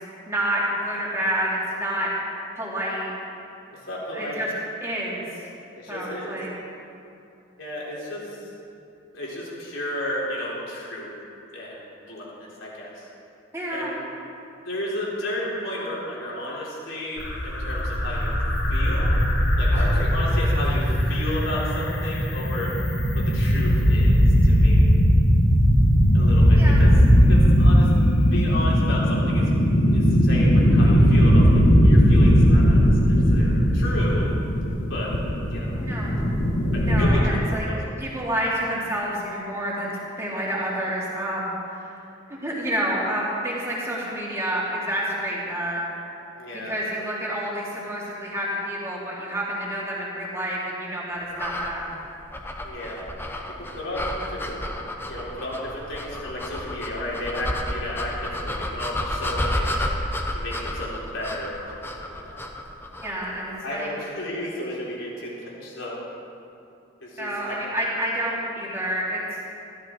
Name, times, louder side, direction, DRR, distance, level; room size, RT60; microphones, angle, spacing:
voice 1, 0.3-2.1 2.6-3.1 4.1-4.5 4.8-5.5 5.9-6.5 13.5-13.9 19.7-19.9 26.6-26.8 35.8-36.1 36.9-37.7 38.0-41.9 42.3-45.8 46.5-51.9 63.0-63.9 67.2-69.2, right 1 dB, 15° right, -6 dB, 2.8 m, -29 dB
voice 2, 3.7-4.4 5.8-6.4 7.6-8.5 9.1-11.1 11.5-13.1 13.7-14.0 14.6-18.3 18.7-19.2 19.6-22.7 23.1-24.9 26.1-26.9 27.2-27.9 28.2-29.5 29.9-34.3 34.9-35.1 35.5-35.7 36.7-37.8 46.4-46.7 52.6-53.1 53.7-54.6 55.1-59.9 60.3-62.4 63.6-66.0 67.0-67.6, left 1 dB, 80° left, -5 dB, 3.8 m, -33 dB
sound 1, 17.2-37.1, equal, 60° left, 1.8 m, -18 dB
sound 2, 51.3-63.2, left 1 dB, 10° left, 0.9 m, -31 dB
14.5 x 13.0 x 4.6 m, 2.7 s
head